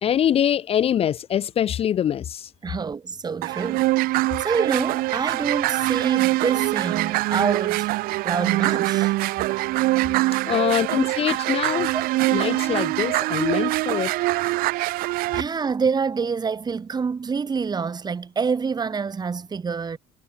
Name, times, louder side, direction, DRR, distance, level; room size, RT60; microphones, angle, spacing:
voice 1, 0.0-2.5 10.5-11.9 12.3-14.1, left 9 dB, 40° left, 0.5 m, -23 dB
voice 2, 2.6-9.1 11.9-12.0 15.3-20.0, right 5 dB, 25° right, 2.6 m, -27 dB
sound 1, 3.4-15.4, right 19 dB, 75° right, 1.4 m, -23 dB
cardioid pair, 105°, 15 cm